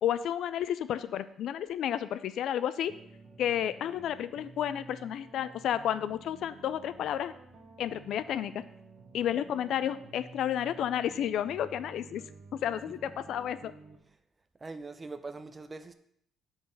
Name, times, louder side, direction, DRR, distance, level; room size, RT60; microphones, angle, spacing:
voice 1, 0.0-3.0 3.4-7.3 7.8-8.6 9.1-12.3 12.5-13.7, left 10 dB, 70° left, 14 dB, 0.4 m, -31 dB
sound 1, 2.8-14.0, right 4 dB, 40° right, 1.1 m, -52 dB
voice 2, 14.6-15.9, right 3 dB, 25° right, 10 dB, 0.5 m, -42 dB
7.1 x 4.0 x 6.6 m, 0.71 s
cardioid pair, 130°, 0 cm